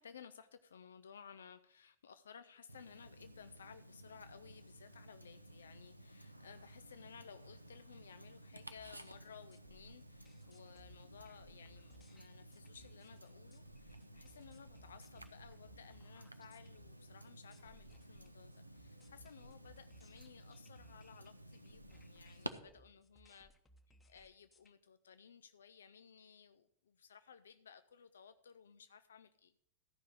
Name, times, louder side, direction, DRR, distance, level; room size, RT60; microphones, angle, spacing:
voice 1, 0.0-23.5 24.1-29.5, left 7 dB, 65° left, 11 dB, 0.4 m, -58 dB
Tick-tock, 2.7-22.5, right 1 dB, 85° right, 0.6 m, -55 dB
sound 1, 8.8-24.7, equal, 15° left, 0.9 m, -66 dB
13.5 x 5.3 x 6.2 m, 0.72 s
figure-of-eight pair, 90°, 0 cm